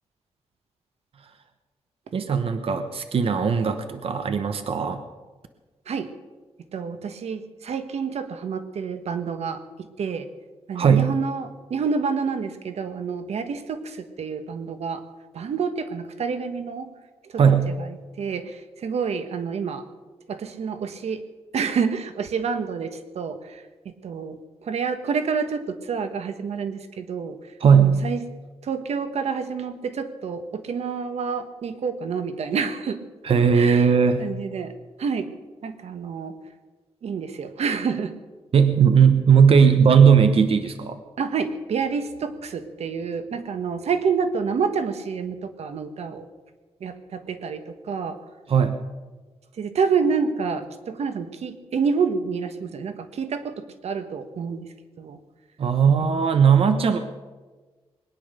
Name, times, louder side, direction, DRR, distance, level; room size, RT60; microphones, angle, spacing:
voice 1, 2.1-5.0 10.7-11.2 17.4-17.8 27.6-28.0 33.2-34.2 38.5-41.0 48.5-48.8 55.6-57.0, right 6 dB, 60° right, 8 dB, 1.0 m, -18 dB
voice 2, 6.7-10.3 10.7-15.0 15.3-16.9 17.3-19.9 20.3-21.2 21.5-27.4 27.7-28.2 28.6-33.0 33.3-33.9 34.2-34.7 35.0-35.3 35.6-36.3 37.0-38.1 41.2-46.3 46.8-48.2 49.6-55.2 55.9-56.3, right 5 dB, 85° right, 10 dB, 1.2 m, -28 dB
21.5 x 10.5 x 6.6 m, 1.3 s
wide cardioid pair, 125°, 11 cm